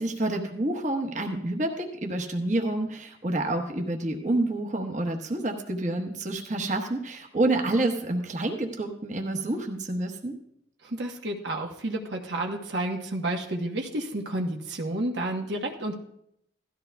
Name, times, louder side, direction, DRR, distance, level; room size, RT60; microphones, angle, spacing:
voice 1, 0.0-10.3, right 2 dB, 45° right, 2 dB, 1.1 m, -28 dB
voice 2, 10.8-15.9, right 1 dB, 80° right, 2 dB, 1.2 m, -31 dB
17.0 x 13.5 x 2.3 m, 0.76 s
head